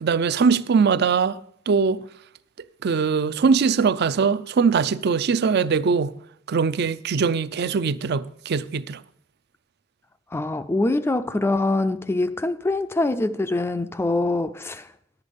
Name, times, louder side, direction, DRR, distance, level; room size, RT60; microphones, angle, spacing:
voice 1, 0.0-1.4 1.7-2.0 2.8-6.1 6.5-9.0, right 5 dB, 55° right, 0.4 m, -21 dB
voice 2, 10.3-14.9, left 2 dB, 15° left, 0.3 m, -24 dB
11.0 x 8.2 x 5.2 m
head